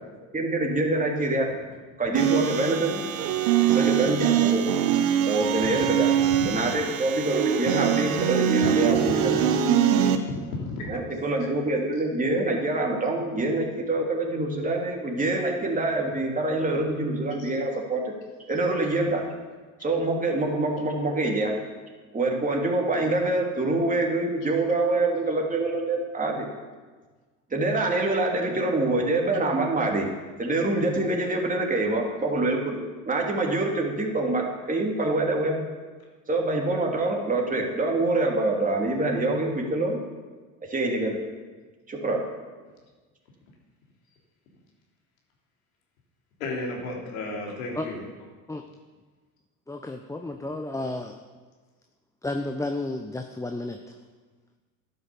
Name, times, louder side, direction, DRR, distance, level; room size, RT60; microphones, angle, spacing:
voice 1, 0.3-1.5 2.0-3.0 3.7-4.6 5.2-6.1 6.4-9.4 10.9-18.1 18.5-19.2 19.8-21.5 22.1-26.5 27.5-30.1 30.4-35.6 36.3-40.0 40.6-41.2 41.9-42.2, right 2 dB, 20° right, 0 dB, 3.0 m, -25 dB
sound 1, 2.2-10.2, right 9 dB, 65° right, 1.3 m, -23 dB
voice 2, 5.7-6.3 8.1-8.2 8.7-8.8 10.2-11.0 17.4-17.5 46.4-48.0, left 2 dB, 80° left, -1 dB, 3.5 m, -34 dB
voice 3, 49.7-51.1 52.2-53.8, left 2 dB, 5° left, 5 dB, 0.8 m, -32 dB
12.0 x 9.4 x 7.0 m, 1.4 s
hypercardioid pair, 80°, 41 cm